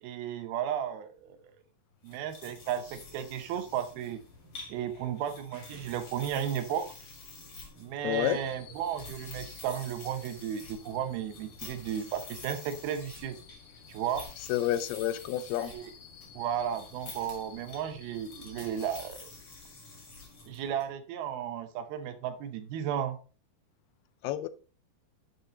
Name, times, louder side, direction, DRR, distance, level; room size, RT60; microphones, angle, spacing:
voice 1, 0.0-1.4 2.0-4.2 4.7-6.9 7.8-13.4 13.9-14.3 15.6-15.9 16.3-19.3 20.5-23.2, right 9 dB, 80° right, 2.7 m, -34 dB
sound 1, 2.0-20.9, left 3 dB, 40° left, 2.7 m, -49 dB
voice 2, 8.0-8.4 14.5-15.7 24.2-24.5, left 12 dB, 85° left, 2.5 m, -29 dB
sound 2, 8.1-19.1, left 8 dB, 70° left, 2.9 m, -55 dB
9.1 x 6.1 x 3.9 m
omnidirectional pair, 4.5 m